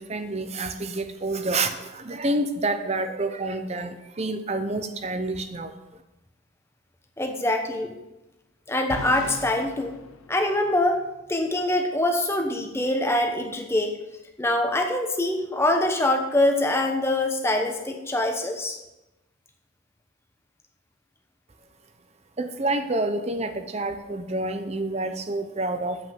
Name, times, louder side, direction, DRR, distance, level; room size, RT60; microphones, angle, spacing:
voice 1, 0.1-1.7 2.1-5.7 22.4-26.1, right 2 dB, 30° right, 9 dB, 0.7 m, -28 dB
voice 2, 7.2-7.9 8.7-10.0 10.3-11.0 11.3-13.9 14.4-18.8, left 1 dB, 10° left, 3 dB, 1.0 m, -24 dB
sound 1, 8.9-11.0, left 2 dB, 90° left, 0.9 m, -39 dB
7.9 x 5.6 x 7.1 m, 0.98 s
head